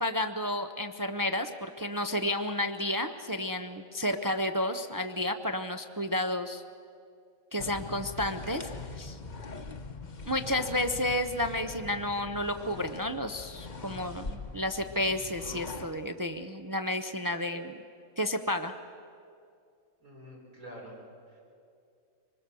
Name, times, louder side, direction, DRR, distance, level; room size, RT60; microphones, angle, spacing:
voice 1, 0.0-6.6 7.5-8.7 9.0-9.2 10.3-17.8 18.2-18.7, left 1 dB, 30° right, 7 dB, 0.4 m, -31 dB
sound 1, 7.6-15.9, left 3 dB, 35° left, 1.0 m, -42 dB
voice 2, 20.0-21.0 21.3-21.4, equal, 85° right, -4 dB, 5.4 m, -47 dB
24.5 x 20.5 x 6.8 m, 2.4 s
omnidirectional pair, 1.4 m